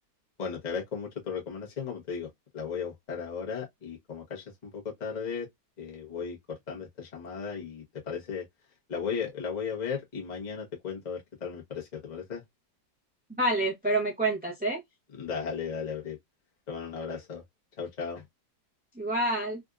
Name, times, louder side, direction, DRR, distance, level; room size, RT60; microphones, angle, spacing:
voice 1, 0.4-2.3 2.5-5.5 5.8-8.4 8.9-12.4 15.2-16.2 16.7-17.4 17.8-18.2, left 6 dB, 30° left, 1.0 m, -36 dB
voice 2, 13.4-14.8 19.0-19.6, right 1 dB, 10° right, 0.7 m, -27 dB
3.7 x 2.6 x 2.3 m
omnidirectional pair, 1.9 m